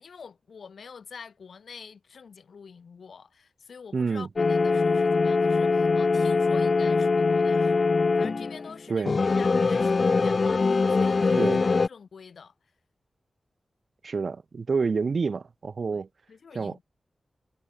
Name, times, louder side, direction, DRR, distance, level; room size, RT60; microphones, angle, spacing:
voice 1, 0.0-12.5 15.9-16.0 16.3-16.8, left 6 dB, 80° left, 7.0 m, -46 dB
voice 2, 3.9-4.3 8.9-9.2 11.4-11.6 14.0-16.1 16.5-16.8, right 4 dB, 55° right, 1.2 m, -28 dB
sound 1, 4.4-8.7 9.0-11.9, left 4 dB, 45° left, 0.5 m, -23 dB
wide cardioid pair, 140°, 0 cm